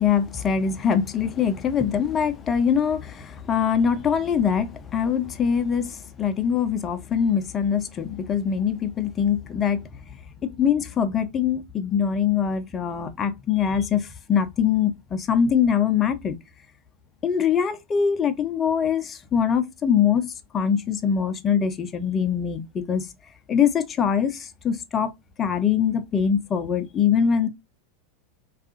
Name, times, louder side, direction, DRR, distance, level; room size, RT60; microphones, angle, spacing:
voice 1, 0.0-9.8 10.4-16.4 17.2-23.1 23.5-25.1 25.4-27.5, left 7 dB, 30° left, 0.5 m, -23 dB
3.4 x 2.4 x 2.5 m
figure-of-eight pair, 85°, 0 cm